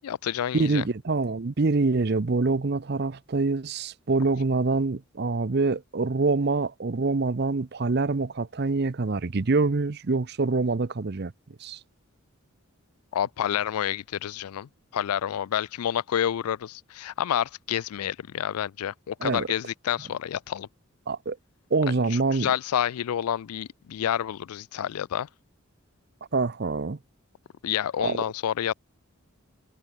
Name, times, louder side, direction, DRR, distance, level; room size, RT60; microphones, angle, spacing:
voice 1, 0.0-0.8 13.1-20.7 22.3-25.3 27.6-28.7, left 10 dB, 90° left, 0.4 m, -29 dB
voice 2, 0.5-11.3 11.6-11.8 19.2-19.5 21.1-21.4 21.7-22.5 26.3-27.0 28.0-28.2, right 3 dB, 50° right, 0.6 m, -25 dB
head